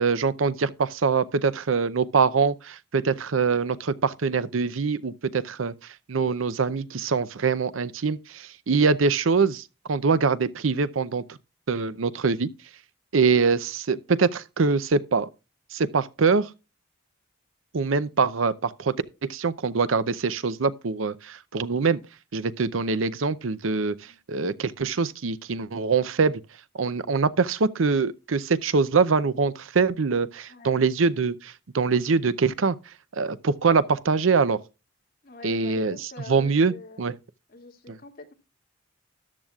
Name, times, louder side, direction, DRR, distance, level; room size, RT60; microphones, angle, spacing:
voice 1, 0.0-5.7 6.1-11.4 11.7-12.5 13.1-15.3 15.7-16.5 17.7-18.9 19.3-22.0 22.3-23.9 24.3-26.4 26.7-32.8 33.1-34.6 35.4-36.0 36.3-37.1, right 5 dB, 85° right, 0.6 m, -24 dB
voice 2, 30.5-30.8 35.2-37.0 37.5-38.3, left 2 dB, 45° left, 2.3 m, -45 dB
13.5 x 10.5 x 2.4 m
head